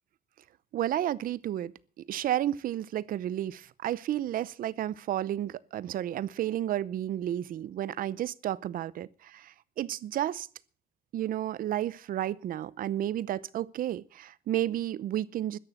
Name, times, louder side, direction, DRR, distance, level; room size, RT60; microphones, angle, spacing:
voice 1, 0.7-1.7 2.1-10.5 11.1-15.6, right 12 dB, 70° right, 0.7 m, -32 dB
13.5 x 10.5 x 7.2 m
cardioid pair, 100°, 15 cm